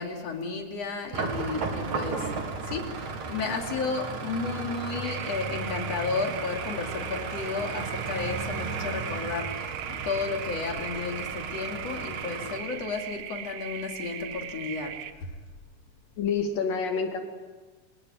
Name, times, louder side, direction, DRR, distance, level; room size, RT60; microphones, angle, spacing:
voice 1, 0.0-2.3 2.6-15.3, left 4 dB, 50° left, 3 dB, 3.7 m, -33 dB
sound 1, 1.1-12.6, right 4 dB, 60° right, 3.6 m, -35 dB
sound 2, 5.0-15.1, right 10 dB, 80° right, 2.9 m, -39 dB
voice 2, 16.2-17.2, left 5 dB, 75° left, 4 dB, 4.4 m, -27 dB
27.0 x 18.5 x 9.5 m, 1.3 s
omnidirectional pair, 3.9 m